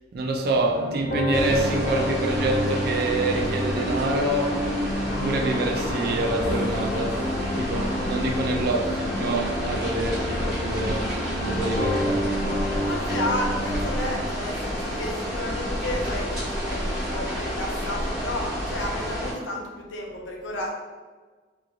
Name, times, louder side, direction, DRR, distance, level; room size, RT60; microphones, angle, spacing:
voice 1, 0.1-4.7 5.0-7.2 7.6-11.1 11.4-12.3, right 2 dB, 55° right, 2 dB, 0.4 m, -26 dB
sound 1, 0.7-14.0, equal, 45° left, 0.6 m, -29 dB
sound 2, 1.3-19.3, equal, 5° right, 1.1 m, -30 dB
voice 2, 7.7-8.2 12.8-20.7, left 1 dB, 85° left, 0 dB, 0.6 m, -32 dB
3.1 x 2.5 x 2.2 m, 1.4 s
head